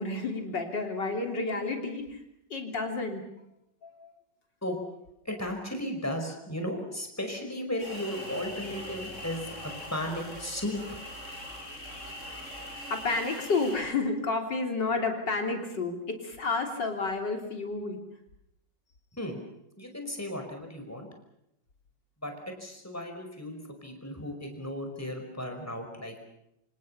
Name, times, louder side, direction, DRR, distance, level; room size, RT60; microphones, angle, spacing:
voice 1, 0.0-2.2 2.5-3.2 3.8-4.1 12.3-18.0, left 3 dB, 80° left, 3 dB, 3.9 m, -31 dB
voice 2, 5.3-10.8 12.3-12.4 19.1-19.4 19.8-21.1 22.2-26.3, left 1 dB, 10° left, 4 dB, 5.4 m, -35 dB
sound 1, 7.8-13.8, left 1 dB, 40° right, 7.5 m, -41 dB
28.0 x 27.0 x 5.7 m, 0.81 s
omnidirectional pair, 1.9 m